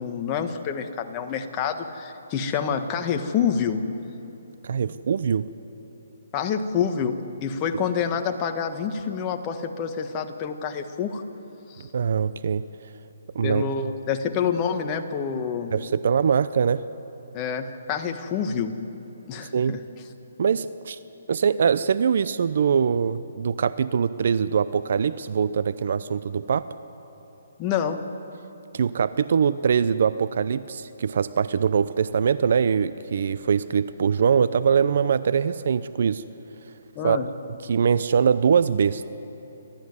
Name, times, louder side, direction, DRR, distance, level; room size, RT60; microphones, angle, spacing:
voice 1, 0.0-3.9 4.8-4.9 6.3-11.2 11.7-11.9 13.4-15.7 17.3-18.8 19.3-19.8 27.6-28.0 36.9-37.3, left 7 dB, 25° left, 6 dB, 1.5 m, -27 dB
voice 2, 4.6-5.4 11.9-12.6 13.3-13.9 15.7-16.8 19.5-19.8 20.4-21.0 21.3-26.7 28.7-36.2 37.0-37.2 37.7-39.1, right 6 dB, 60° right, 14 dB, 0.7 m, -22 dB
28.0 x 13.0 x 9.7 m, 3.0 s
hypercardioid pair, 150°, 0 cm